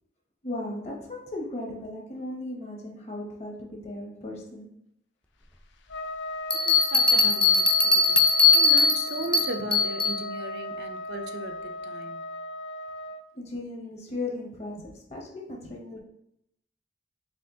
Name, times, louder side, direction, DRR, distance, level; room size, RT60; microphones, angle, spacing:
voice 1, 0.4-4.7 13.3-16.0, left 2 dB, 40° left, -1 dB, 0.9 m, -36 dB
Trumpet, 5.9-13.2, left 1 dB, 80° left, 0.4 m, -37 dB
sound 1, 6.5-10.2, left 3 dB, 5° left, 0.3 m, -20 dB
voice 2, 6.6-12.3 14.8-14.9 15.6-15.7, right 2 dB, 65° right, 6 dB, 0.4 m, -37 dB
4.3 x 2.9 x 2.7 m, 0.75 s
head